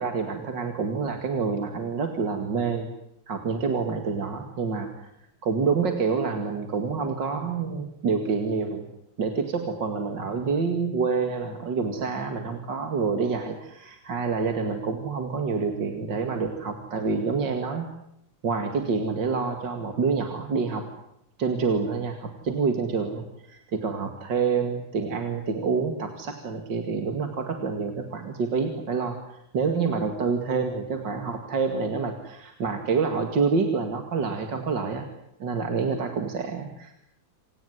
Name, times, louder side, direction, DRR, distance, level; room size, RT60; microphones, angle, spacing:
voice 1, 0.0-2.9 3.3-5.1 5.4-8.9 9.2-17.9 18.4-20.9 21.4-35.1 35.4-36.9, right 5 dB, 65° right, 5 dB, 2.8 m, -27 dB
28.0 x 18.0 x 9.5 m, 0.80 s
omnidirectional pair, 2.1 m